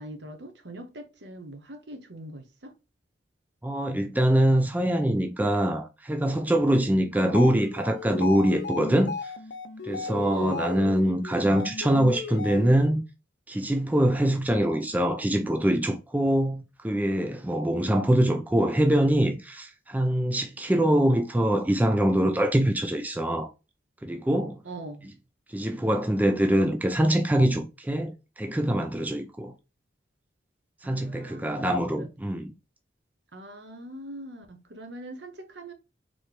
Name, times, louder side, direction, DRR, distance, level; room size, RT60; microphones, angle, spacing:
voice 1, 0.0-2.7 7.1-7.5 10.3-10.7 24.6-25.1 30.8-32.1 33.3-35.7, right 1 dB, 70° right, 0.9 m, -42 dB
voice 2, 3.6-9.3 9.8-13.0 13.5-23.5 24.0-24.6 25.5-29.5 30.8-32.5, right 1 dB, 10° right, 0.4 m, -24 dB
sound 1, 7.2-13.0, left 5 dB, 80° left, 0.6 m, -35 dB
4.2 x 3.1 x 3.2 m
head